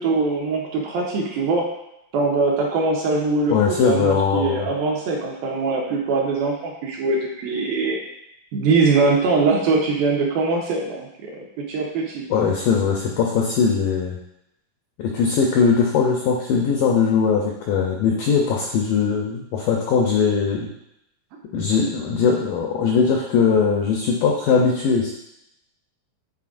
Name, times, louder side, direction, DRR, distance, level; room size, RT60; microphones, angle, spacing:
voice 1, 0.0-1.6 2.1-3.6 3.8-8.0 8.5-12.2, right 3 dB, 75° right, -1 dB, 2.4 m, -22 dB
voice 2, 3.5-4.7 12.3-14.2 15.0-20.7 21.5-25.1, left 5 dB, 90° left, 0 dB, 1.9 m, -20 dB
9.6 x 4.3 x 2.5 m, 0.82 s
omnidirectional pair, 4.6 m